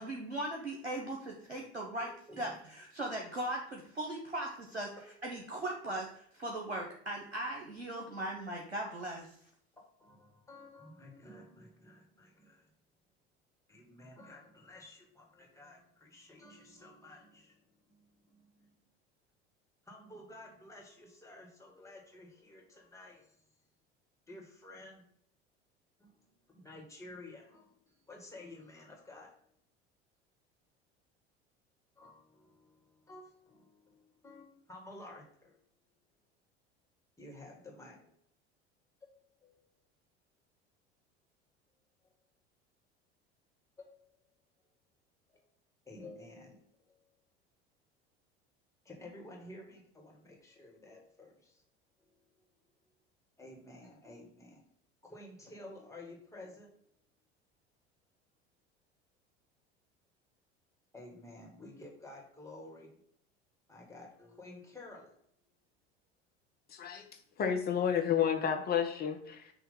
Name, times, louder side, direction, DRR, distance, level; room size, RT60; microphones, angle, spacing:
voice 1, 0.0-2.1 2.4-4.9 5.2-9.3, right 1 dB, 90° right, 0 dB, 0.8 m, -38 dB
voice 2, 2.0-2.6 5.0-5.1 10.0-12.7 13.7-18.8 19.8-23.4 24.3-25.1 26.0-29.3 32.0-35.6 37.2-38.1 39.0-39.7 43.8-44.1 45.3-45.5 45.9-47.2 48.9-51.6 52.0-52.2 53.4-54.6 55.0-56.7 60.9-62.9 63.7-65.2, left 2 dB, 10° left, -1 dB, 1.8 m, -52 dB
voice 3, 66.7-67.1 67.4-69.5, left 8 dB, 30° left, 4 dB, 1.0 m, -31 dB
6.4 x 2.8 x 5.5 m, 0.65 s
figure-of-eight pair, 70°, 32 cm